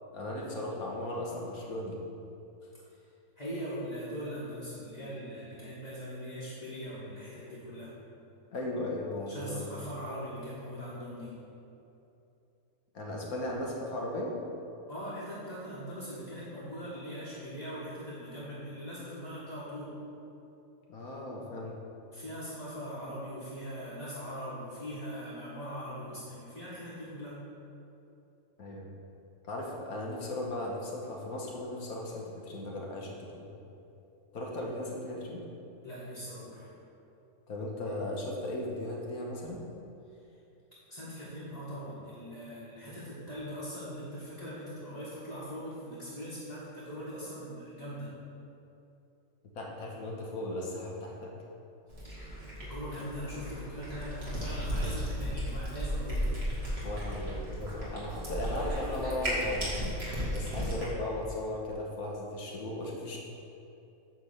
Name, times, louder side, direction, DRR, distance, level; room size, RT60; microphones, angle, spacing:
voice 1, 0.1-2.0 8.5-9.7 12.9-14.3 20.9-21.7 28.6-28.9 29.4-33.5 34.3-35.4 37.5-39.7 49.5-51.3 56.8-59.7 60.3-63.2, left 1 dB, 75° left, -2 dB, 1.7 m, -37 dB
voice 2, 3.4-7.9 9.3-11.3 14.9-20.0 22.1-27.4 35.8-36.7 40.9-48.1 52.6-56.3, equal, 25° left, -10 dB, 1.7 m, -41 dB
Cat, 51.9-60.9, equal, 45° right, 2.1 m, -35 dB
9.2 x 3.6 x 6.7 m, 2.8 s
omnidirectional pair, 1.5 m